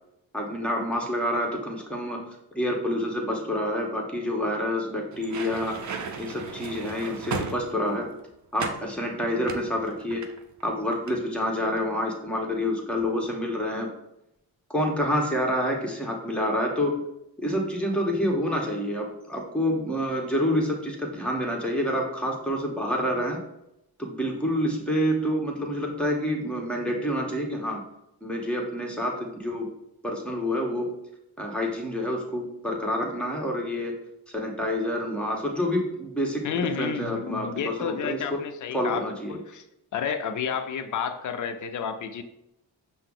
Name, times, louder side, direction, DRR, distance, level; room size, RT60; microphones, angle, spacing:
voice 1, 0.3-2.3 2.6-5.8 6.2-8.1 8.5-10.3 10.6-13.9 14.7-17.0 17.4-23.4 24.0-27.8 28.2-29.7 30.0-31.0 31.4-34.0 34.3-36.5 36.8-38.4 38.7-39.4, equal, 5° left, -1 dB, 1.1 m, -28 dB
sound 1, 5.1-8.1 8.6-8.9 9.4-10.7 10.9-11.2, right 5 dB, 45° right, 0.6 m, -35 dB
voice 2, 36.4-39.6 39.9-42.2, left 7 dB, 45° left, 7 dB, 0.5 m, -31 dB
5.5 x 2.0 x 3.7 m, 0.83 s
cardioid pair, 50°, 43 cm